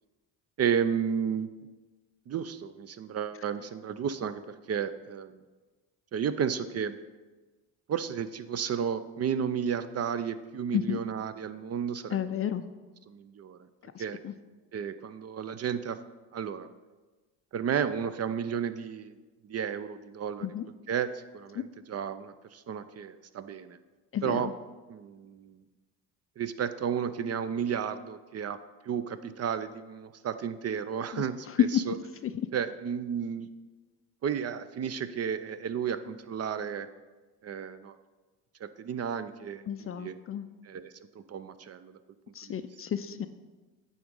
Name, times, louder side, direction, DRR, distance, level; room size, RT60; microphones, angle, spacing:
voice 1, 0.6-1.5 2.3-5.4 6.1-7.0 7.9-12.2 13.1-13.6 14.0-14.2 14.7-16.0 16.3-16.7 17.5-19.2 19.4-20.5 20.9-23.8 24.2-24.5 24.9-25.6 26.4-28.6 28.8-32.0 32.5-33.5 34.2-36.9 37.4-38.0 38.6-40.1 40.6-40.9 41.3-42.0 42.4-42.7, right 7 dB, 40° right, 13 dB, 0.4 m, -32 dB
voice 2, 12.1-12.7 13.9-14.3 20.4-20.7 21.5-21.6 24.1-24.5 31.1-31.9 32.2-32.5 39.7-40.5 42.3-43.3, left 9 dB, 35° left, 11 dB, 0.4 m, -31 dB
9.3 x 3.8 x 5.3 m, 1.2 s
supercardioid pair, 65°, 43 cm